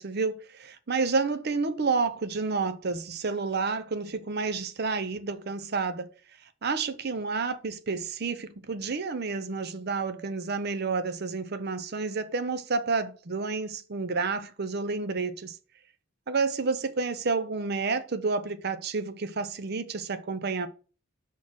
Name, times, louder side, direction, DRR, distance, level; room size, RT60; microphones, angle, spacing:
voice 1, 0.0-6.1 6.6-15.6 16.3-20.7, right 4 dB, 50° right, 0.7 m, -30 dB
5.6 x 4.3 x 6.1 m
head